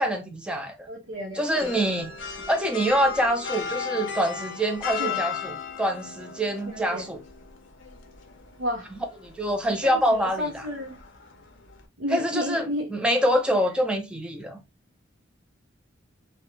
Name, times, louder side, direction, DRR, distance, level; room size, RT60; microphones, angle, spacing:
voice 1, 0.0-0.9 1.4-2.1 2.5-7.2 9.2-10.6 12.1-14.6, equal, 5° right, 0.4 m, -25 dB
voice 2, 0.9-1.8 5.0-5.2 6.7-7.1 8.6-8.9 9.8-11.0 12.0-12.9, left 1 dB, 70° right, 0.6 m, -32 dB
sound 1, 1.5-11.9, left 7 dB, 65° left, 0.5 m, -37 dB
2.4 x 2.1 x 2.9 m
head